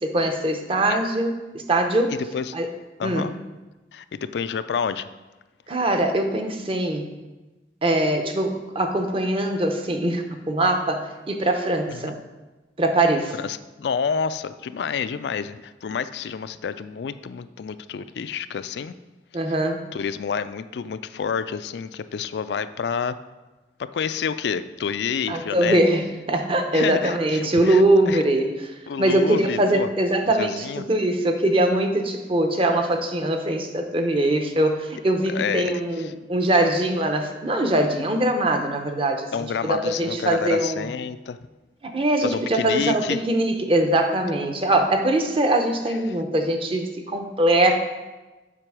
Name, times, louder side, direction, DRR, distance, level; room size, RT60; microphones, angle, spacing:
voice 1, 0.0-2.1 2.5-2.7 3.0-3.3 5.7-7.1 7.8-12.2 12.8-13.3 19.3-19.8 25.3-28.7 29.0-39.3 39.6-40.9 41.8-47.8, right 1 dB, 30° right, 5 dB, 0.7 m, -22 dB
voice 2, 3.0-3.3 3.9-5.1 11.9-12.1 13.4-18.9 19.4-19.5 19.9-23.2 23.9-25.8 26.7-28.2 28.9-29.9 30.4-30.8 35.3-36.1 39.3-41.4 42.2-43.2, left 6 dB, 70° left, 13 dB, 0.3 m, -29 dB
7.5 x 5.2 x 4.8 m, 1.2 s
head